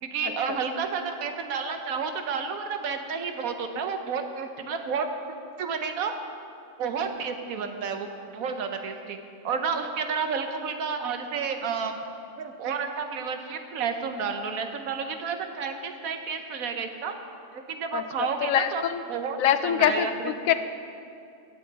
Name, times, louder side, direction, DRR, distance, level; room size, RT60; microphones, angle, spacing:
voice 1, 0.0-5.1 5.6-6.1 6.8-12.0 12.4-17.1 17.5-18.8 19.1-20.1 20.5-20.6, right 5 dB, 85° right, 6 dB, 1.3 m, -31 dB
voice 2, 18.4-19.0 19.4-20.5, left 10 dB, 80° left, 11 dB, 1.0 m, -24 dB
16.5 x 7.6 x 4.0 m, 2.6 s
omnidirectional pair, 1.4 m